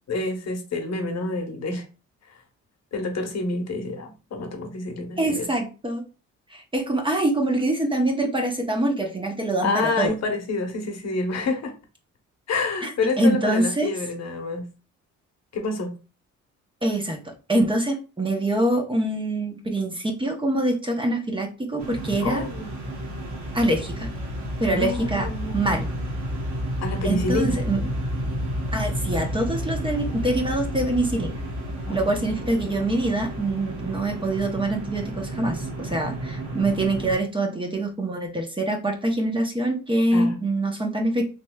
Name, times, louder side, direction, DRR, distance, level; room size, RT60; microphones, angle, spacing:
voice 1, 0.1-1.8 2.9-5.5 9.6-11.7 12.5-14.7 15.5-15.9 22.2-22.7 24.7-25.6 26.8-27.6 31.9-32.1 40.1-40.4, left 3 dB, 60° left, 4 dB, 0.9 m, -28 dB
voice 2, 5.2-6.0 6.5-10.1 12.8-13.9 16.8-17.2 17.5-22.5 23.5-24.1 24.6-25.3 25.5-25.9 27.0-27.8 28.7-31.3 31.9-41.2, right 1 dB, 15° right, 3 dB, 0.7 m, -24 dB
sound 1, 21.8-37.1, equal, 70° right, 1.0 m, -31 dB
3.1 x 2.9 x 2.2 m, 0.32 s
cardioid pair, 90°, 30 cm